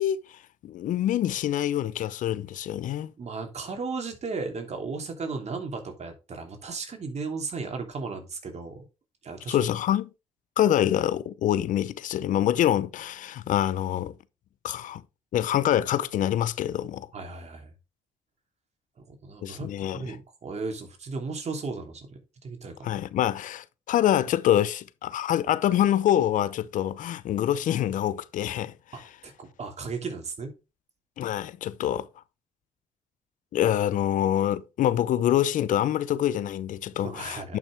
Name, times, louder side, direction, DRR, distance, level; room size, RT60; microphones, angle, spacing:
voice 1, 0.0-3.1 9.5-10.1 10.6-14.1 14.6-15.0 15.3-17.1 19.4-20.0 22.8-28.7 31.2-32.1 33.5-37.6, left 11 dB, 70° left, 0.6 m, -25 dB
voice 2, 3.2-8.9 9.2-9.6 12.3-12.4 17.1-17.7 19.0-22.9 28.9-30.5 37.0-37.6, right 4 dB, 50° right, 2.9 m, -35 dB
10.5 x 5.9 x 3.4 m
hypercardioid pair, 50°, 14 cm